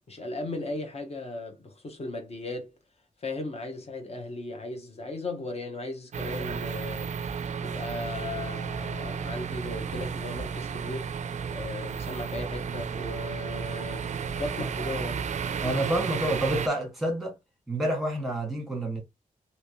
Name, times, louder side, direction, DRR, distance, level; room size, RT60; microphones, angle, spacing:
voice 1, 0.1-2.7 3.2-11.1 11.5-15.3, left 2 dB, 45° left, 1.1 m, -37 dB
sound 1, 6.1-16.7, right 6 dB, 55° right, 0.4 m, -33 dB
voice 2, 15.6-17.3 17.7-19.0, right 1 dB, ahead, 1.6 m, -28 dB
3.2 x 2.8 x 2.9 m
wide cardioid pair, 130°, 15 cm